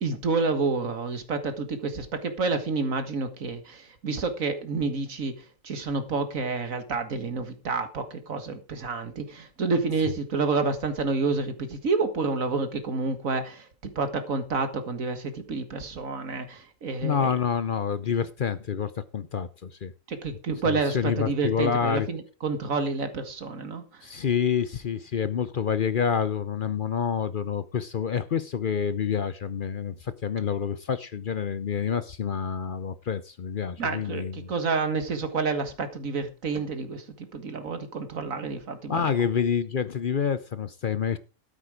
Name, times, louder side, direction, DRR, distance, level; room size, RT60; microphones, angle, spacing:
voice 1, 0.0-5.3 5.6-13.7 14.0-17.3 20.1-23.8 33.8-39.0, right 4 dB, 85° right, 2.1 m, -29 dB
voice 2, 17.0-19.9 20.6-22.1 24.0-34.5 38.9-41.2, left 7 dB, 50° left, 0.7 m, -28 dB
13.0 x 8.8 x 4.9 m
omnidirectional pair, 1.4 m